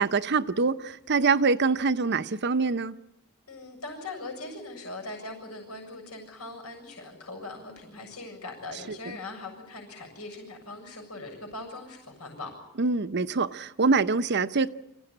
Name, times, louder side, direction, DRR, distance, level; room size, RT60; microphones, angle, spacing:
voice 1, 0.0-3.0 12.8-14.7, right 4 dB, 50° right, 0.8 m, -24 dB
voice 2, 3.5-12.5, left 2 dB, 85° left, 7.1 m, -40 dB
25.5 x 16.0 x 9.8 m
head